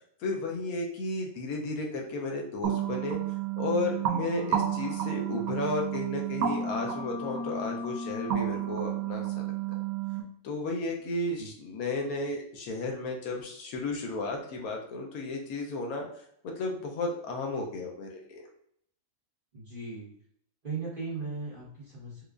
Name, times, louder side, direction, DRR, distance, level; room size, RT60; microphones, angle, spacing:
voice 1, 0.2-3.2 3.6-9.5 10.4-16.1 16.4-18.4, left 2 dB, 80° left, 1 dB, 1.1 m, -33 dB
sound 1, 2.6-10.2, right 8 dB, 80° right, 1.0 m, -31 dB
voice 2, 19.5-20.1 20.6-22.2, right 4 dB, 40° right, -7 dB, 1.2 m, -37 dB
4.6 x 2.4 x 2.4 m, 0.69 s
omnidirectional pair, 1.5 m